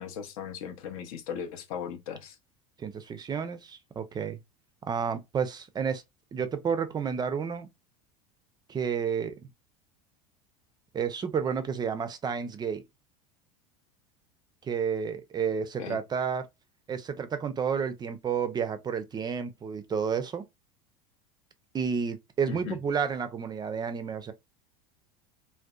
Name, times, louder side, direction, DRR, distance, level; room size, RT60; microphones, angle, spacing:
voice 1, 0.0-2.3 15.8-16.0 22.5-22.8, left 8 dB, 70° left, 0.6 m, -37 dB
voice 2, 2.8-4.4 4.8-6.0 6.3-7.7 8.7-9.3 10.9-12.8 14.6-16.5 16.9-20.4 21.7-24.3, right 6 dB, 20° right, 0.4 m, -31 dB
2.6 x 2.1 x 2.2 m
hypercardioid pair, 85°, 19 cm